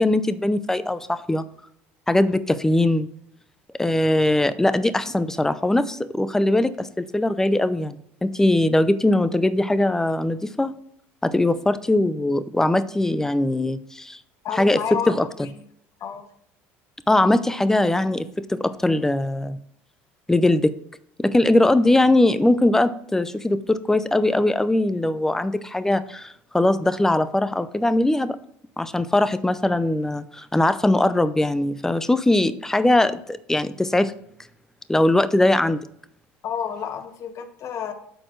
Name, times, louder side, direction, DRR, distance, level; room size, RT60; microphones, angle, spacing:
voice 1, 0.0-1.4 2.1-3.1 3.8-8.0 8.2-10.7 11.2-14.2 14.6-14.8 15.1-15.3 17.1-19.6 20.3-20.7 21.2-28.4 28.8-34.1 34.9-35.8, left 1 dB, 5° left, 14 dB, 0.5 m, -21 dB
voice 2, 14.4-15.1 15.4-15.6 16.0-16.3 36.4-37.9, left 7 dB, 50° left, 6 dB, 1.4 m, -30 dB
12.5 x 4.3 x 3.2 m, 0.70 s
supercardioid pair, 95°, 6 cm